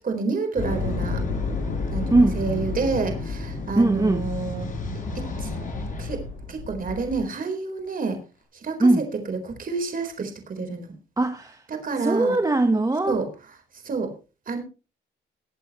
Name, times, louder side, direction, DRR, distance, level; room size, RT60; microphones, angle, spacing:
voice 1, 0.0-1.2 1.9-4.7 5.1-5.5 6.0-6.2 6.5-8.2 8.6-8.9 9.3-10.9 11.7-12.4 13.1-13.3 13.8-14.1 14.5-14.6, right 4 dB, 45° right, 6 dB, 4.2 m, -28 dB
sound 1, 0.6-7.3, left 3 dB, 40° left, 6.0 m, -30 dB
voice 2, 3.8-4.3 8.8-9.0 11.2-11.6 12.0-13.2, right 2 dB, 15° right, 7 dB, 1.2 m, -20 dB
20.5 x 8.4 x 3.0 m, 0.31 s
cardioid pair, 90°, 20 cm